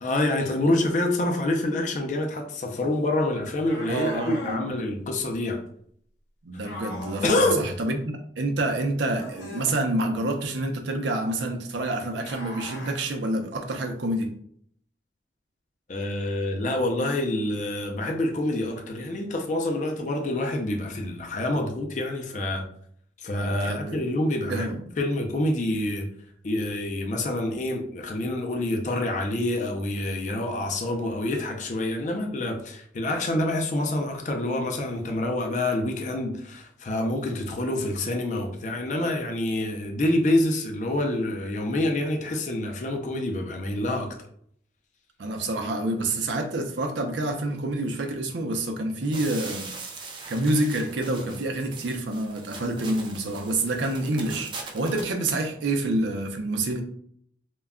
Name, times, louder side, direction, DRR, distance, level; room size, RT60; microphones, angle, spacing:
voice 1, 0.0-5.6 7.2-7.7 15.9-22.6 23.2-24.7 25.0-26.1 26.4-44.1, left 1 dB, 40° left, 3 dB, 0.4 m, -27 dB
sound 1, 3.7-4.6 6.6-7.4 9.0-9.8 12.2-13.0, left 1 dB, 65° left, 0.8 m, -39 dB
voice 2, 3.9-4.7 6.4-14.3 23.4-24.0 24.5-24.8 45.2-49.7 50.0-56.8, right 2 dB, 80° right, 4 dB, 0.5 m, -28 dB
sound 2, 49.1-55.1, right 4 dB, 25° right, 0.3 m, -41 dB
2.2 x 2.1 x 3.5 m, 0.64 s
head